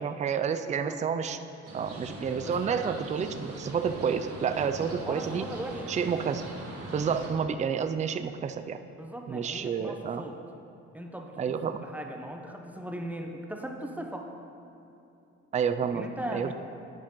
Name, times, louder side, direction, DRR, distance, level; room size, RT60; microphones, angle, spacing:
voice 1, 0.0-1.4 1.7-5.5 5.9-6.4 6.9-8.8 9.3-10.2 11.4-11.8 15.5-16.1 16.3-16.5, right 7 dB, 25° right, 10 dB, 0.4 m, -29 dB
sound 1, 1.6-7.3, right 1 dB, 50° right, 1.7 m, -41 dB
voice 2, 2.4-3.1 5.0-5.9 9.0-10.4 10.9-14.3 15.9-16.5, right 1 dB, 5° right, 2 dB, 0.8 m, -39 dB
10.0 x 6.3 x 3.8 m, 2.7 s
cardioid pair, 90°, 30 cm